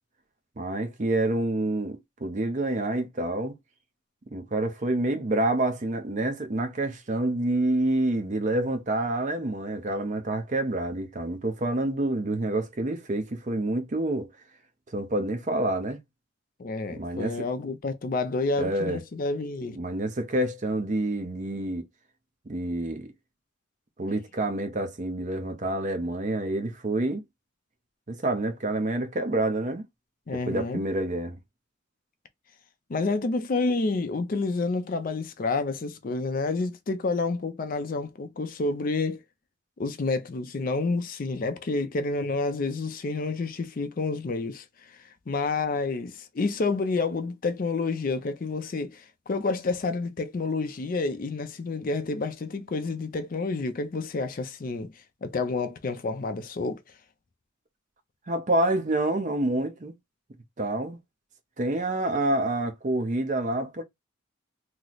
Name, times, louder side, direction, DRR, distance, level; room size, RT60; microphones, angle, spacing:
voice 1, 0.6-3.6 4.3-14.3 14.9-16.0 16.9-17.4 18.6-19.0 19.8-21.9 22.5-23.1 24.0-27.2 28.1-29.9 30.3-31.4 58.3-59.9 60.6-61.0 61.6-63.8, right 2 dB, 40° right, 0.6 m, -28 dB
voice 2, 16.6-19.8 30.3-30.8 32.9-39.2 39.8-44.6 45.3-54.9 55.2-56.8, left 3 dB, 45° left, 0.4 m, -29 dB
3.0 x 2.0 x 3.8 m
head